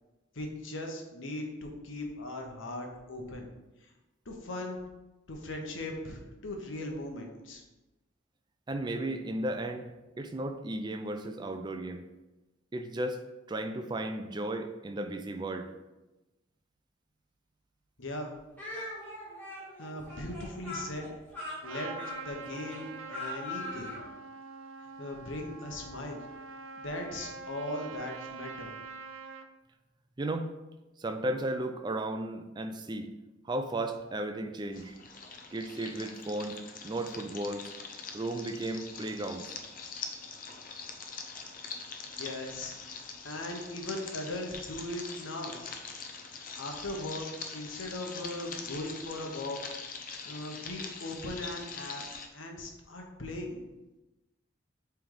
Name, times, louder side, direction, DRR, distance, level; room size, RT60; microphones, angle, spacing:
voice 1, 0.3-3.5 4.2-4.8 5.3-7.6 18.0-18.3 19.8-21.1 21.6-21.9 22.2-23.9 25.0-26.2 26.8-28.7 42.1-42.8 43.2-45.6 46.3-49.6 50.0-52.0 52.3-53.6, left 1 dB, 75° left, 2 dB, 1.1 m, -39 dB
voice 2, 8.7-9.9 10.2-12.0 12.7-13.2 13.5-15.7 30.2-30.5 31.0-33.1 33.4-34.9 35.5-37.7 38.1-39.5, right 1 dB, 20° right, 7 dB, 0.4 m, -34 dB
Speech, 18.6-24.1, left 1 dB, 10° left, 2.1 m, -41 dB
Trumpet, 21.6-29.5, right 4 dB, 85° right, 0.5 m, -45 dB
sound 1, 34.7-52.3, left 5 dB, 45° left, 0.6 m, -43 dB
7.8 x 3.4 x 3.9 m, 1.0 s
head